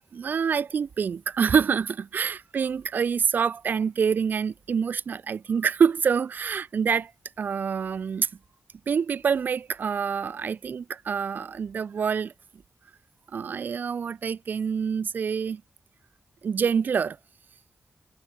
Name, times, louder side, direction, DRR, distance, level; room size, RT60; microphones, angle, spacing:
voice 1, 0.1-7.1 7.4-8.3 8.9-12.3 13.3-15.6 16.4-17.2, right 6 dB, 80° right, 0.9 m, -26 dB
wide cardioid pair, 85°, 3 cm